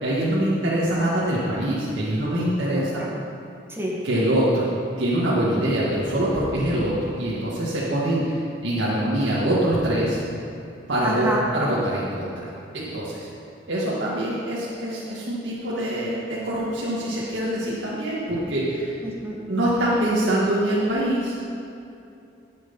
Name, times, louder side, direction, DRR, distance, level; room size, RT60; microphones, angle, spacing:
voice 1, 0.0-3.0 4.0-4.7 5.0-8.3 8.6-10.2 10.9-11.3 11.5-13.3 13.7-18.9 19.5-21.3, right 1 dB, 85° right, -7 dB, 2.1 m, -24 dB
voice 2, 2.7-3.1 3.7-4.0 11.0-11.5 13.8-14.0 19.0-19.4, right 1 dB, 15° right, -3 dB, 1.8 m, -29 dB
13.5 x 8.2 x 5.5 m, 2.6 s
head